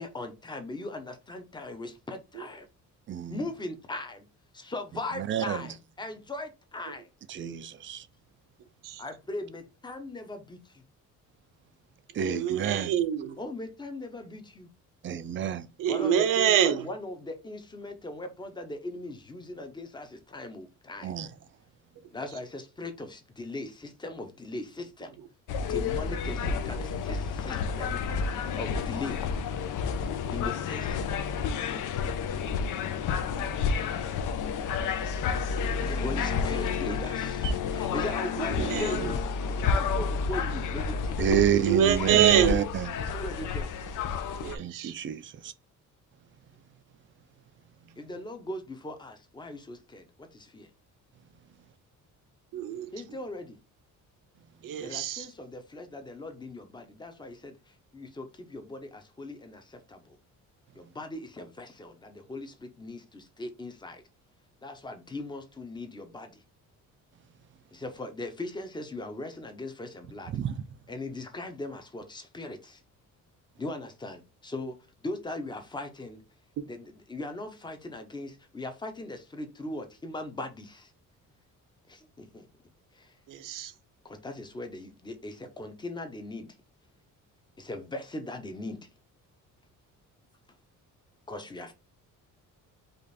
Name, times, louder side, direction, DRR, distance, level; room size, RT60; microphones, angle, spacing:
voice 1, 0.0-2.7 3.3-4.2 4.5-7.1 9.0-10.8 13.4-14.7 15.8-21.2 22.1-25.1 25.7-28.2 28.6-29.3 30.3-31.1 35.8-39.2 39.5-41.4 41.7-42.5 43.0-43.7 48.0-50.7 52.9-53.6 54.8-60.2 60.7-64.0 64.6-66.4 67.7-70.3 70.9-72.8 73.6-74.8 75.0-76.2 76.7-80.9 81.9-82.5 82.9-83.1 84.0-86.5 87.6-88.9 91.3-91.7, left 2 dB, 15° left, 0.7 m, -39 dB
voice 2, 7.3-8.0 12.2-12.9 15.0-15.7 21.0-21.3 41.2-42.9 44.6-45.5 70.3-70.5, right 9 dB, 40° right, 0.4 m, -28 dB
voice 3, 12.2-13.4 15.8-16.8 38.6-38.9 41.5-42.6 44.4-44.9 52.5-52.9 54.6-55.2 83.3-83.7, right 10 dB, 75° right, 0.8 m, -25 dB
sound 1, 25.5-44.6, left 5 dB, 65° left, 0.7 m, -30 dB
5.1 x 2.5 x 4.1 m
cardioid pair, 165°, 33 cm